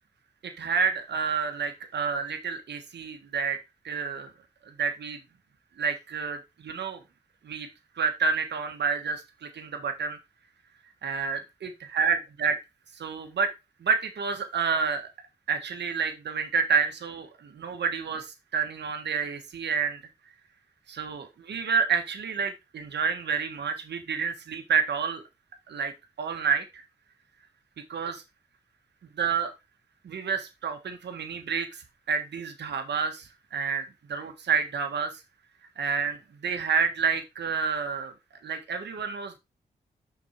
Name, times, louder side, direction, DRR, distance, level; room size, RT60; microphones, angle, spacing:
voice 1, 0.4-3.6 3.8-4.3 4.6-5.2 5.8-7.0 7.4-7.7 8.0-10.2 11.0-12.6 12.9-13.5 13.8-15.1 15.5-20.0 20.9-25.2 25.7-25.9 26.2-26.8 27.9-28.2 29.2-29.5 30.0-35.2 35.8-38.1 38.4-39.4, right 6 dB, 85° right, 5 dB, 1.4 m, -29 dB
6.2 x 4.6 x 4.4 m, 0.23 s
cardioid pair, 60°, 17 cm